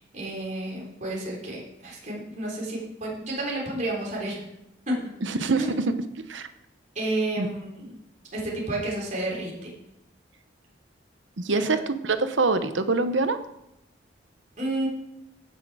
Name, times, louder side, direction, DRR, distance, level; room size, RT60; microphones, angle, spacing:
voice 1, 0.0-4.4 4.9-5.0 5.6-5.7 7.0-7.9 8.3-9.7 11.5-11.7 14.6-14.9, right 1 dB, 40° right, -4 dB, 3.8 m, -31 dB
voice 2, 5.2-6.0 6.3-6.5 7.4-7.5 11.4-13.4, right 3 dB, 80° right, 10 dB, 0.9 m, -25 dB
16.0 x 6.4 x 4.9 m, 0.84 s
head